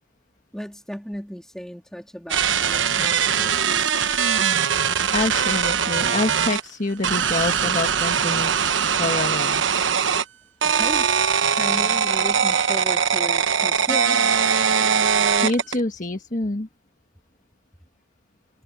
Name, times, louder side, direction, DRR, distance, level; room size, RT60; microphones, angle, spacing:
voice 1, 0.5-3.9 10.6-14.2, equal, 5° left, 2.5 m, -36 dB
sound 1, 2.3-6.6 7.0-10.2 10.6-15.8, right 7 dB, 85° right, 1.1 m, -21 dB
voice 2, 5.1-8.5 9.0-9.6 15.4-16.7, left 2 dB, 45° left, 1.5 m, -26 dB
head